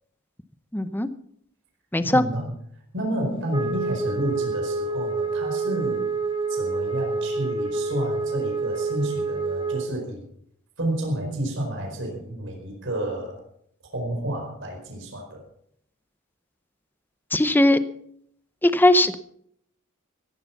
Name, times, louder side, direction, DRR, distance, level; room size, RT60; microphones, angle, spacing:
voice 1, 0.7-1.1 1.9-2.2 17.3-17.8 18.6-19.2, left 1 dB, 10° left, 12 dB, 0.7 m, -19 dB
voice 2, 2.0-2.5 2.9-6.1 6.5-10.2 10.8-13.4 13.9-15.4, right 1 dB, 55° right, 2 dB, 4.7 m, -30 dB
Wind instrument woodwind instrument, 3.5-9.9, right 3 dB, 25° right, 2.3 m, -27 dB
16.5 x 11.5 x 5.8 m, 0.68 s
head